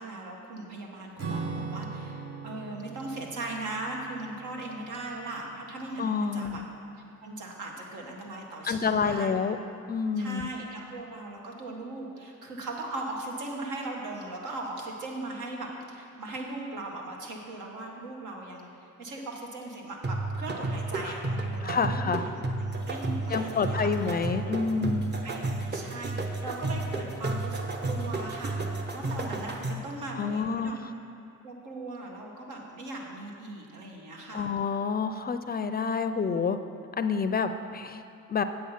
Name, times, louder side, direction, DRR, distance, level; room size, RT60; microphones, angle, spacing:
voice 1, 0.0-6.6 7.2-9.4 10.2-23.9 25.2-28.6 28.9-30.8 31.4-34.5, right 2 dB, 80° right, 0 dB, 1.6 m, -39 dB
Acoustic guitar / Strum, 1.2-6.0, right 4 dB, 55° right, 1.2 m, -40 dB
voice 2, 6.0-6.7 8.7-9.6 9.9-10.5 21.0-21.1 21.6-22.2 23.3-25.0 30.1-30.9 34.3-36.6 37.0-38.0 38.3-38.4, left 5 dB, 30° left, 10 dB, 0.4 m, -28 dB
sound 1, 20.0-30.0, right 2 dB, 35° right, 1.0 m, -32 dB
8.5 x 7.7 x 5.7 m, 2.5 s
cardioid pair, 90°, 30 cm